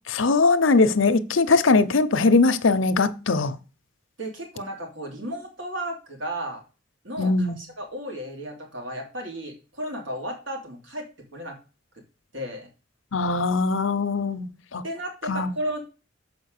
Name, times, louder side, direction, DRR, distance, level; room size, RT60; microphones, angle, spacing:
voice 1, 0.1-3.6 7.2-7.6 13.1-14.8 15.3-15.6, left 3 dB, 90° left, 0.8 m, -21 dB
voice 2, 4.2-6.6 7.0-11.6 12.3-12.7 14.8-15.8, right 1 dB, 80° right, 2.9 m, -34 dB
7.3 x 5.2 x 6.6 m
head